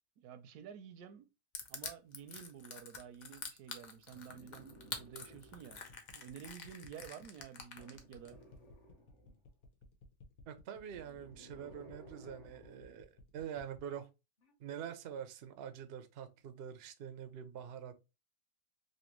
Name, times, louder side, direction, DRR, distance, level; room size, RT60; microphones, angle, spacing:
voice 1, 0.2-1.3 1.7-5.8 6.1-8.4, right 8 dB, 80° right, 1.1 m, -51 dB
Crushing, 1.5-8.3, left 5 dB, 65° left, 0.4 m, -46 dB
sound 1, 4.1-6.1 7.7-9.5 10.8-13.1 14.4-14.5, right 1 dB, 40° left, 0.7 m, -58 dB
sound 2, 5.3-13.9, left 4 dB, 85° left, 1.3 m, -59 dB
voice 2, 10.5-14.1 14.6-18.0, right 8 dB, 65° right, 0.6 m, -45 dB
3.3 x 2.6 x 2.9 m
omnidirectional pair, 1.6 m